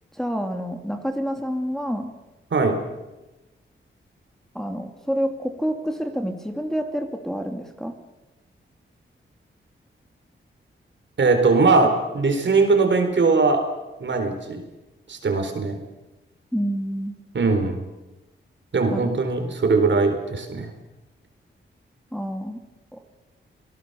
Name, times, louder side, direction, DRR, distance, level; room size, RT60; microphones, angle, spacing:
voice 1, 0.1-2.1 4.5-7.9 16.5-17.1 18.9-19.1 22.1-22.6 22.9-23.0, equal, ahead, 4 dB, 2.5 m, -28 dB
voice 2, 11.2-13.6 14.0-14.6 15.1-15.8 17.3-17.9 18.7-20.7, right 4 dB, 60° right, 6 dB, 4.2 m, -20 dB
28.0 x 18.5 x 6.9 m, 1.0 s
cardioid pair, 80°, 21 cm